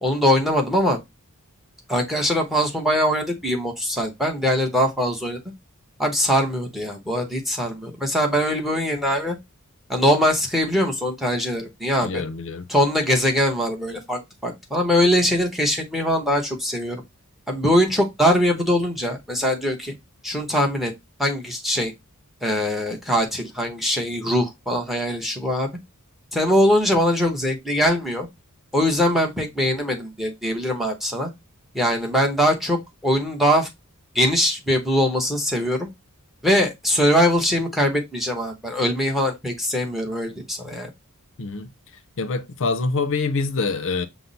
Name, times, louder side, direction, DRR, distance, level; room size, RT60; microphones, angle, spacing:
voice 1, 0.0-1.0 1.9-5.4 6.0-9.4 9.9-12.2 12.7-17.0 17.5-19.9 20.2-20.9 21.2-21.9 22.4-25.7 26.3-28.3 28.7-31.3 31.7-33.7 34.1-35.9 36.4-40.9, equal, ahead, 0.9 m, -22 dB
voice 2, 12.0-12.7 41.4-41.7 42.2-44.1, left 4 dB, 60° left, 0.6 m, -25 dB
5.7 x 2.0 x 4.0 m
head